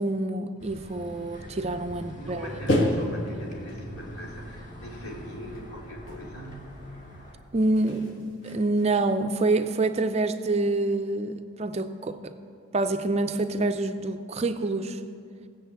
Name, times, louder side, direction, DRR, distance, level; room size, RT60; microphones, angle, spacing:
voice 1, 0.0-2.5 7.5-12.3 12.7-15.0, right 2 dB, 30° right, 8 dB, 0.4 m, -27 dB
sound 1, 0.6-7.3, equal, 35° left, 2.0 m, -44 dB
sound 2, 2.0-2.1 2.7-3.9 5.5-5.8 6.1-7.2 7.5-9.0, left 1 dB, 55° left, 1.6 m, -30 dB
voice 2, 2.2-6.8, equal, 75° left, -3 dB, 3.1 m, -41 dB
17.0 x 6.9 x 8.1 m, 2.5 s
head